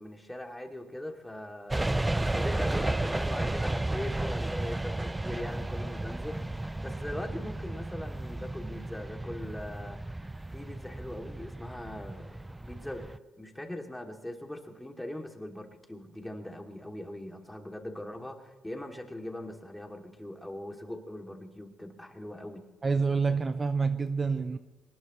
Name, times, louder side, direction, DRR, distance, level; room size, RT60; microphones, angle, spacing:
voice 1, 0.0-10.0 10.5-22.7, left 1 dB, 5° left, 2 dB, 2.8 m, -41 dB
sound 1, 1.7-13.2, right 2 dB, 15° right, 0.4 m, -33 dB
voice 2, 22.8-24.6, right 4 dB, 30° right, 9 dB, 0.8 m, -27 dB
23.0 x 19.5 x 3.2 m, 1.2 s
cardioid pair, 90°, 0 cm